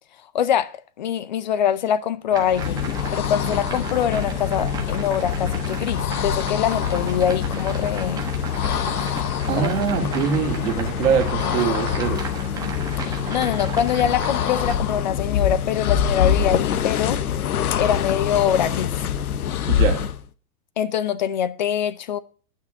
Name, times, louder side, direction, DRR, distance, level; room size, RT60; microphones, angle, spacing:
voice 1, 0.3-0.7 1.0-2.8 3.1-8.3 9.6-9.7 13.0-17.2 17.8-18.9 20.8-22.2, left 9 dB, 30° left, 0.5 m, -24 dB
sound 1, 2.3-14.8, right 6 dB, 10° right, 1.0 m, -35 dB
sound 2, 2.4-20.2, left 8 dB, 65° left, 1.1 m, -25 dB
voice 2, 9.5-12.3 19.7-20.0, right 8 dB, 50° right, 2.7 m, -23 dB
10.5 x 6.1 x 8.4 m
hypercardioid pair, 155°, 48 cm